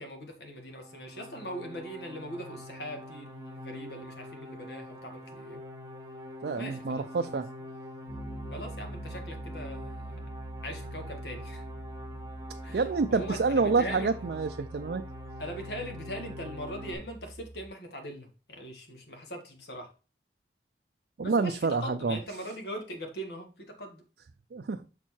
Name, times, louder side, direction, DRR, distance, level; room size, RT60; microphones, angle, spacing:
voice 1, 0.0-5.6 6.6-7.1 8.5-10.3 10.6-11.6 12.6-12.8 13.1-14.1 15.4-19.9 21.2-24.0, equal, 70° left, 1.8 m, -41 dB
sound 1, 0.7-17.0, left 1 dB, 20° right, 1.0 m, -45 dB
voice 2, 6.4-7.5 12.7-15.0 21.2-22.2 24.5-24.8, right 4 dB, 65° right, 0.4 m, -28 dB
Piano, 8.1-17.7, right 1 dB, 90° left, 3.1 m, -43 dB
6.5 x 4.5 x 4.4 m
head